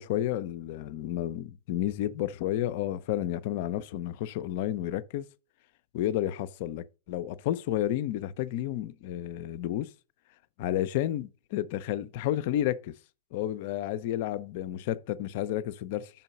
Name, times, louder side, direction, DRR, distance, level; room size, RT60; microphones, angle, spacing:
voice 1, 0.0-5.2 5.9-9.9 10.6-12.9 13.3-16.1, left 12 dB, 50° left, 0.4 m, -31 dB
5.6 x 4.4 x 4.9 m
figure-of-eight pair, 90°, 0 cm